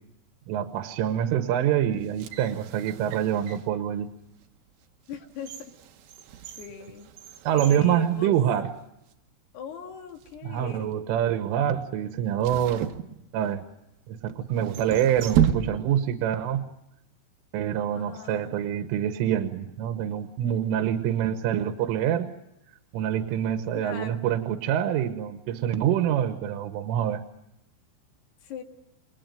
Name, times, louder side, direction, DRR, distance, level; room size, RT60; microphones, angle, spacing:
voice 1, 0.5-4.1 7.5-8.7 10.4-12.9 13.3-13.7 14.1-16.6 17.5-22.3 22.9-27.2, right 10 dB, 85° right, 7 dB, 3.7 m, -26 dB
sound 1, 2.0-3.8 4.4-4.5 5.1-8.8 9.1-9.2 10.0-10.4 12.4-13.7 14.6-16.1 16.4-16.5, right 10 dB, 70° right, 2.4 m, -32 dB
voice 2, 5.1-5.7 6.6-7.1 7.5-8.4 9.5-11.0 17.9-18.6 23.7-24.2 28.4-28.6, left 6 dB, 60° left, 4 dB, 3.9 m, -40 dB
29.0 x 22.0 x 9.1 m, 0.84 s
omnidirectional pair, 5.6 m